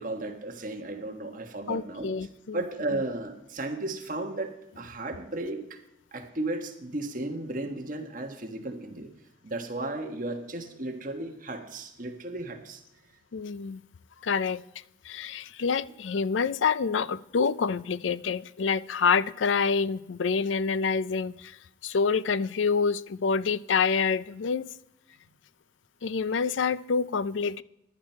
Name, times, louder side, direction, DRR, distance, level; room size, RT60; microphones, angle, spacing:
voice 1, 0.0-2.1 2.5-5.8 6.1-9.1 9.4-12.8, right 2 dB, 45° right, 1.4 m, -34 dB
voice 2, 1.7-2.6 13.3-13.8 14.2-14.6 15.0-21.6 21.8-24.7 26.0-27.6, left 5 dB, 85° left, 0.5 m, -27 dB
15.0 x 11.0 x 4.5 m
head